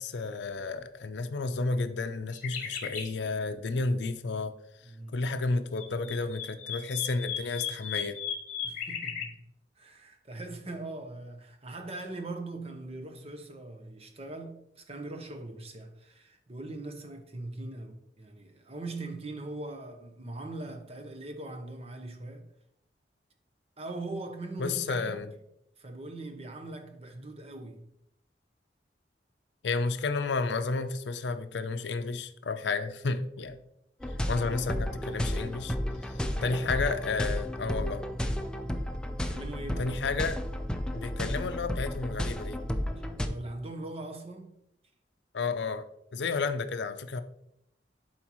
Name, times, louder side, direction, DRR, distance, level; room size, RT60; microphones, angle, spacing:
voice 1, 0.0-4.5 5.1-8.2 24.6-25.3 29.6-33.6 34.3-35.8 36.0-38.0 39.8-40.4 40.9-42.6 45.3-45.9 46.1-47.2, left 4 dB, 70° left, 0.5 m, -31 dB
sound 1, 2.3-3.1 5.5-9.3, left 7 dB, 50° left, 1.5 m, -36 dB
voice 2, 4.8-5.2 8.6-9.4 9.8-22.5 23.8-25.2 25.8-27.9 36.2-36.7 39.3-39.9 43.2-44.6, right 2 dB, 35° right, 0.9 m, -41 dB
sound 2, 34.0-43.3, equal, 5° left, 0.5 m, -33 dB
11.0 x 4.4 x 3.1 m
head